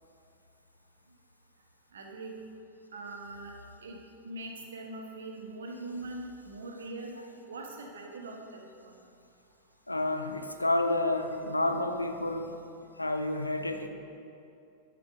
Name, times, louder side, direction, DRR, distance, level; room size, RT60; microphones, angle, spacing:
voice 1, 1.9-2.4 2.9-3.5 3.8-4.0 4.2-7.1 7.5-9.0, right 2 dB, 65° right, 1 dB, 1.2 m, -42 dB
voice 2, 9.9-12.5 13.0-13.9, left 2 dB, 85° left, 7 dB, 0.6 m, -29 dB
8.4 x 7.0 x 5.2 m, 2.5 s
figure-of-eight pair, 90°, 0 cm